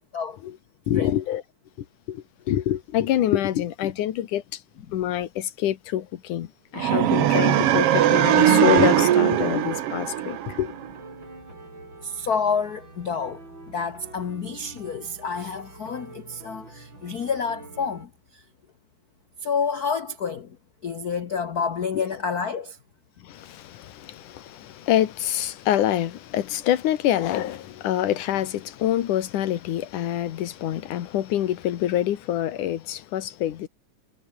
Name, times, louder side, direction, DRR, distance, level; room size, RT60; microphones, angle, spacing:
voice 1, 0.9-1.4 1.8-4.6 4.9-6.5 6.7-10.7 21.9-22.0 23.2-33.7, left 12 dB, 85° left, 2.9 m, -26 dB
sound 1, 6.8-10.9, right 12 dB, 60° right, 1.8 m, -20 dB
sound 2, 9.3-18.1, right 2 dB, 35° right, 7.8 m, -45 dB
voice 2, 12.0-13.4 13.7-18.4 19.4-20.6 20.8-22.8, left 5 dB, 70° left, 0.8 m, -29 dB
omnidirectional pair, 3.5 m